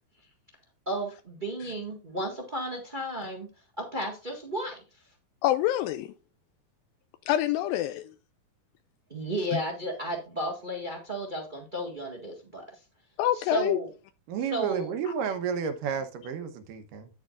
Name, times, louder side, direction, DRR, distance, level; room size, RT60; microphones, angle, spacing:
voice 1, 0.8-3.5 3.8-4.8 9.1-12.6 13.3-13.9 14.5-14.9, right 1 dB, 50° right, 0.5 m, -33 dB
voice 2, 5.4-6.1 7.3-8.1 9.5-9.6 13.2-13.8, left 13 dB, 85° left, 2.3 m, -26 dB
voice 3, 14.3-17.1, right 6 dB, 75° right, 2.5 m, -31 dB
9.5 x 8.4 x 2.5 m
omnidirectional pair, 4.1 m